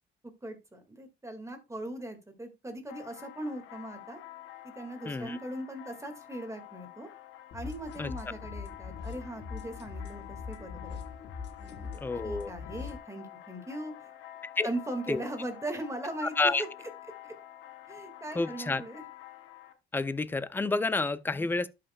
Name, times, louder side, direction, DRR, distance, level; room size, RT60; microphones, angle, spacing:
voice 1, 0.4-4.2 4.6-7.1 7.5-11.0 11.6-14.1 14.6-16.7 17.2-17.3 17.9-19.0, right 1 dB, 15° right, 2.0 m, -39 dB
sound 1, 2.9-19.7, left 13 dB, 90° left, 1.1 m, -49 dB
voice 2, 5.1-5.4 8.0-8.1 12.0-12.5 14.6-14.7 15.1-15.2 16.2-16.6 18.3-18.8 19.9-21.7, left 3 dB, 10° left, 0.5 m, -29 dB
sound 2, 7.5-13.0, left 5 dB, 60° left, 1.1 m, -42 dB
12.0 x 5.7 x 2.3 m
cardioid pair, 90°, 20 cm